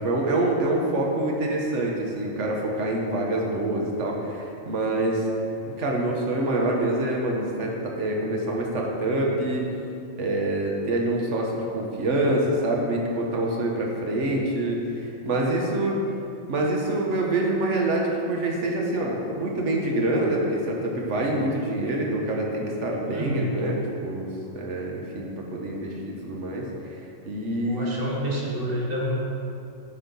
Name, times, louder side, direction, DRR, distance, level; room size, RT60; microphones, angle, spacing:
voice 1, 0.0-5.3 5.7-9.7 10.2-16.0 16.5-24.3 24.5-27.0 27.3-28.0, right 1 dB, 65° right, -1 dB, 1.4 m, -26 dB
voice 2, 23.1-23.6 27.6-29.2, equal, 45° right, -3 dB, 1.4 m, -28 dB
8.5 x 4.3 x 5.3 m, 2.6 s
omnidirectional pair, 1.4 m